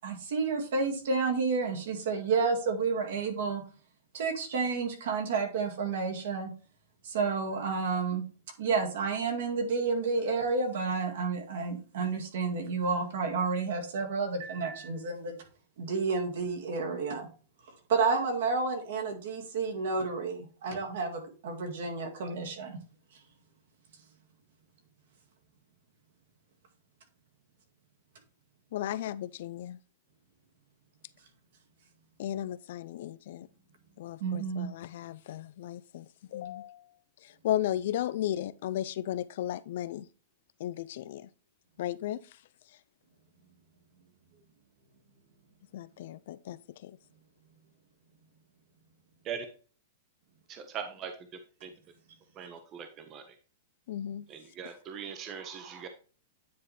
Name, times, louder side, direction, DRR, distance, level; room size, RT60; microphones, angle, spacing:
voice 1, 0.0-3.6 4.1-6.5 7.0-8.2 8.6-15.4 15.8-17.3 17.9-22.8 34.2-34.7, right 4 dB, 60° right, 1.9 m, -30 dB
voice 2, 28.7-29.8 32.2-33.5 34.0-36.9 37.2-40.1 40.6-41.3 41.8-42.4 45.7-47.0 53.9-54.3, left 12 dB, 55° left, 0.3 m, -35 dB
voice 3, 50.7-51.1 51.6-51.7 52.4-53.2 54.3-55.9, right 7 dB, 20° right, 0.6 m, -40 dB
9.4 x 4.1 x 3.3 m
supercardioid pair, 175°, 0 cm